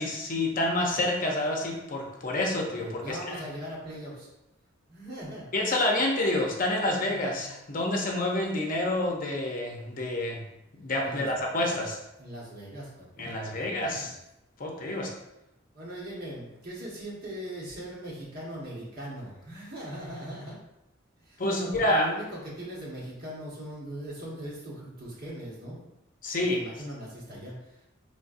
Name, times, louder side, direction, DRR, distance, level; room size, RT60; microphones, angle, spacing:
voice 1, 0.0-3.4 5.5-10.4 10.7-12.0 13.2-14.2 14.6-15.1 21.4-22.1 26.2-26.6, left 1 dB, 45° left, 0 dB, 0.7 m, -28 dB
voice 2, 2.8-4.3 4.9-5.5 7.1-7.5 11.0-11.5 12.2-14.1 15.7-20.6 21.2-25.9 26.3-27.8, right 1 dB, 50° right, -5 dB, 1.5 m, -40 dB
5.2 x 3.3 x 2.6 m, 0.90 s
head